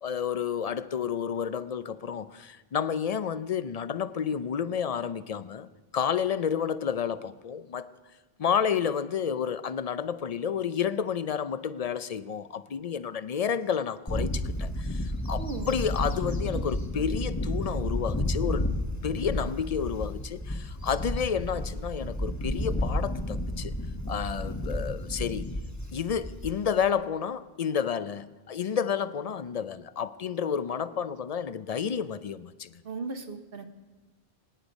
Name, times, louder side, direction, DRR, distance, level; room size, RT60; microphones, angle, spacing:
voice 1, 0.0-5.7 5.9-7.9 8.4-18.8 19.0-23.7 24.1-25.5 25.9-32.8, left 7 dB, 50° left, 0.5 m, -30 dB
Bird / Wind, 14.1-26.9, left 1 dB, 15° left, 1.0 m, -31 dB
voice 2, 15.4-15.7 32.8-33.7, right 3 dB, 65° right, 1.2 m, -36 dB
24.5 x 9.9 x 5.2 m
omnidirectional pair, 1.0 m